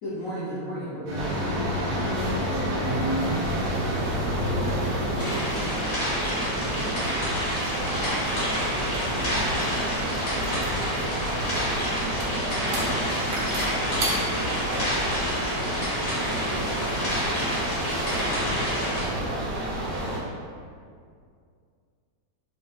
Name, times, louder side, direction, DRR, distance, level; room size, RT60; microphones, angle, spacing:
voice 1, 0.0-2.5 6.4-6.9, equal, 85° left, -11 dB, 0.7 m, -34 dB
sound 1, 1.1-20.2, right 1 dB, 50° right, 0.6 m, -30 dB
sound 2, 1.1-14.9, equal, 90° right, 0.7 m, -33 dB
sound 3, 5.2-19.0, equal, 40° left, 1.1 m, -29 dB
voice 2, 7.7-10.5 11.1-11.8 12.2-15.0 15.5-19.4, right 1 dB, 65° right, -8 dB, 1.0 m, -42 dB
3.6 x 2.7 x 2.2 m, 2.2 s
omnidirectional pair, 2.2 m